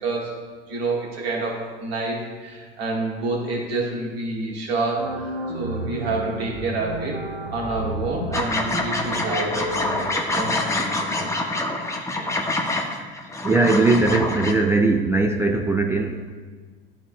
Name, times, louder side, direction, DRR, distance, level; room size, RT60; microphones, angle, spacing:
voice 1, 0.0-0.4 0.7-7.2 7.5-11.3 12.1-12.3, right 2 dB, 75° right, -3 dB, 1.9 m, -28 dB
sound 1, 5.0-10.1, right 2 dB, 40° right, 1.3 m, -32 dB
sound 2, 8.3-14.5, left 2 dB, 10° left, 0.9 m, -26 dB
voice 2, 13.0-16.4, right 3 dB, 10° right, 3 dB, 0.3 m, -20 dB
12.5 x 4.2 x 2.4 m, 1.5 s
figure-of-eight pair, 70°, 31 cm